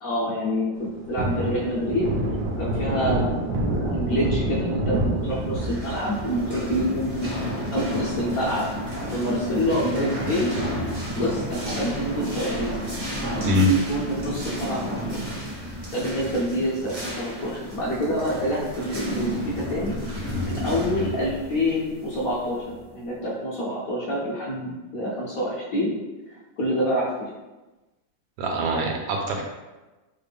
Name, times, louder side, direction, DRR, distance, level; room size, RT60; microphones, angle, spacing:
voice 1, 0.0-2.1 2.6-7.3 7.7-8.7 9.1-10.6 11.2-12.8 13.2-15.3 15.9-19.9 20.4-25.9 26.3-27.3, equal, 65° left, -6 dB, 0.9 m, -27 dB
Thunder, 0.7-11.5 11.9-12.0 12.3-13.8 14.1-14.3 14.6-15.4 15.8-15.9 16.3-16.4 18.7-19.3, right 1 dB, 70° right, 0.9 m, -30 dB
sound 1, 5.4-22.8, equal, 45° right, 0.5 m, -32 dB
voice 2, 28.4-29.4, left 1 dB, 90° right, 1 dB, 1.4 m, -23 dB
3.4 x 2.4 x 3.3 m, 1.1 s
omnidirectional pair, 2.1 m